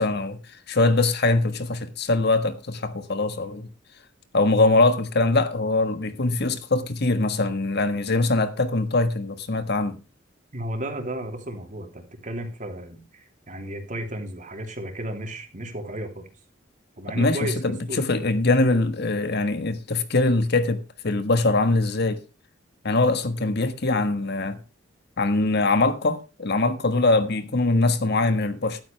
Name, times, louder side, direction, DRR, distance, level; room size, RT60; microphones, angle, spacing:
voice 1, 0.0-3.7 4.3-10.0 17.1-22.2 22.8-24.6 25.2-28.8, left 2 dB, 60° left, 1.5 m, -22 dB
voice 2, 10.5-16.3 17.0-17.6 17.9-18.0, right 1 dB, 40° right, 3.2 m, -34 dB
14.0 x 12.5 x 3.3 m
head